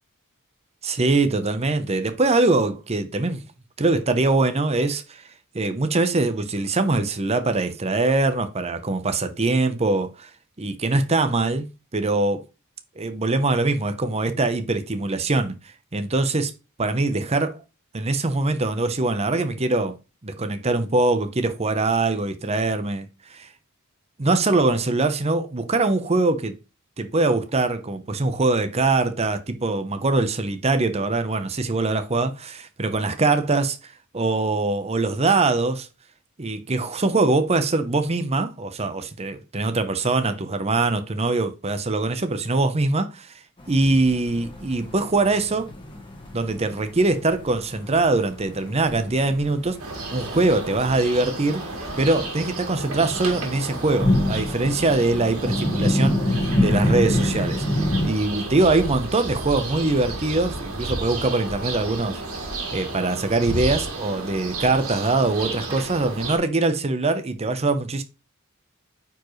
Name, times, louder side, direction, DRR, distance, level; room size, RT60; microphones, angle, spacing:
voice 1, 0.8-3.4 3.8-5.2 5.5-10.3 10.6-11.6 11.9-12.4 13.0-15.6 15.9-16.5 16.8-17.6 17.9-20.0 20.2-23.5 24.2-26.6 27.0-35.9 36.4-43.3 43.7-45.7 46.3-49.8 50.1-51.6 52.0-62.2 62.7-68.0, right 2 dB, 30° right, 0.8 m, -23 dB
sound 1, 43.6-58.1, left 1 dB, 25° left, 1.5 m, -27 dB
sound 2, 49.8-66.4, right 2 dB, 85° right, 2.3 m, -32 dB
9.1 x 4.7 x 3.1 m
head